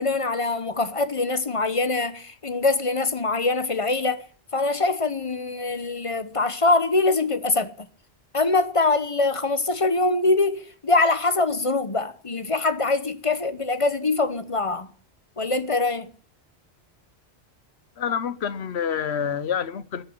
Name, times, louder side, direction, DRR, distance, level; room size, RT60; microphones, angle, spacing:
voice 1, 0.0-4.3 4.5-7.7 8.3-14.9 15.4-16.1, left 3 dB, 35° left, 1.0 m, -23 dB
voice 2, 18.0-20.0, left 7 dB, 85° left, 1.2 m, -27 dB
14.0 x 6.7 x 8.5 m
omnidirectional pair, 1.1 m